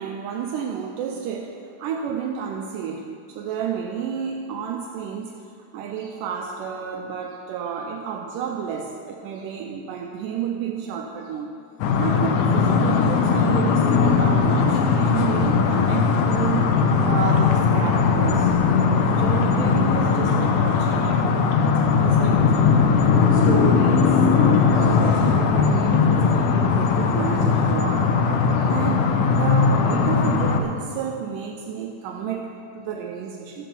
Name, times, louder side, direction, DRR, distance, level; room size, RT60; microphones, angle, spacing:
voice 1, 0.0-11.6 12.0-16.7 17.0-21.3 22.0-22.8 23.3-28.2 28.5-33.7, right 7 dB, 80° right, 3 dB, 2.1 m, -31 dB
sound 1, 11.8-30.6, left 5 dB, 75° left, 2.1 m, -19 dB
13.5 x 7.5 x 5.3 m, 2.4 s
omnidirectional pair, 4.0 m